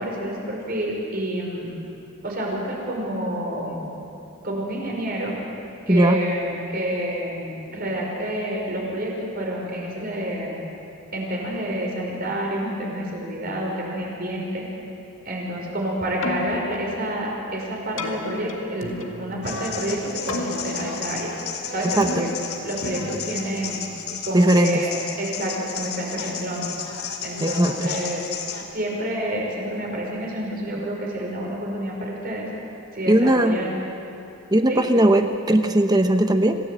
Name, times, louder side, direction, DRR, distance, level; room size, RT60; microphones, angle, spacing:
voice 1, 0.0-1.7 2.2-3.8 4.4-5.4 5.9-10.6 11.1-14.7 15.3-21.3 21.7-22.3 22.6-23.8 24.2-26.8 27.2-28.3 28.7-32.5 32.9-33.8 34.7-34.8, right 1 dB, 40° right, -1 dB, 5.4 m, -28 dB
voice 2, 5.9-6.2 22.0-22.3 24.3-24.8 27.4-27.9 33.1-33.6 34.5-36.6, right 1 dB, 20° right, 7 dB, 0.8 m, -18 dB
Keyboard (musical), 16.1-24.2, left 2 dB, 55° left, 2.0 m, -35 dB
sound 1, 19.4-28.6, left 6 dB, 80° left, 2.9 m, -33 dB
27.0 x 17.0 x 8.2 m, 2.7 s
head